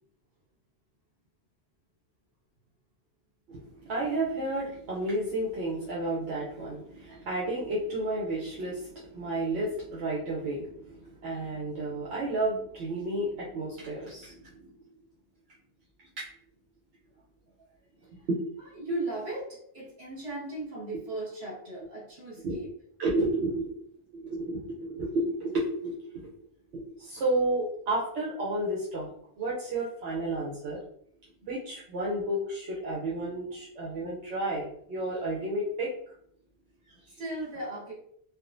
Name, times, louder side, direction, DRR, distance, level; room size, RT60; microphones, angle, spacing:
voice 1, 3.5-14.8 16.2-16.3 18.3-18.4 22.4-22.6 23.0-23.9 24.1-26.3 26.7-29.1 29.4-30.8 31.5-36.1 37.0-37.2, right 1 dB, 80° right, -5 dB, 0.9 m, -32 dB
voice 2, 18.7-22.7 37.2-37.9, right 2 dB, 65° right, -6 dB, 1.6 m, -36 dB
3.5 x 2.1 x 2.4 m, 0.67 s
omnidirectional pair, 1.1 m